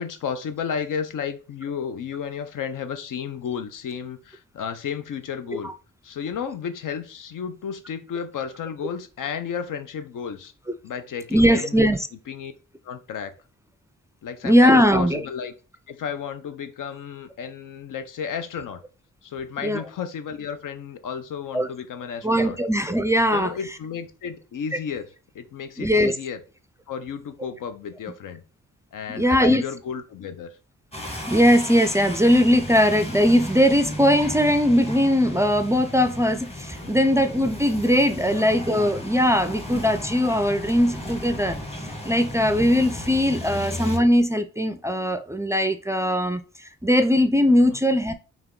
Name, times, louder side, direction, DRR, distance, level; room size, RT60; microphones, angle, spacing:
voice 1, 0.0-5.7 6.0-10.5 10.8-11.9 12.3-12.5 12.8-13.3 14.2-15.5 15.9-18.8 19.2-22.6 23.3-26.4 26.9-28.4 28.9-30.6 36.8-37.1 38.2-38.5 43.5-43.6 47.5-47.8, left 7 dB, 75° left, 0.6 m, -33 dB
voice 2, 11.3-12.0 14.4-15.3 19.6-19.8 21.5-21.7 22.2-23.5 25.8-26.1 29.1-29.6 31.3-41.6 42.0-46.4 46.8-48.1, equal, 10° right, 0.3 m, -20 dB
sound 1, 30.9-44.0, left 1 dB, 20° left, 1.2 m, -34 dB
3.5 x 3.0 x 3.7 m
cardioid pair, 70°, 32 cm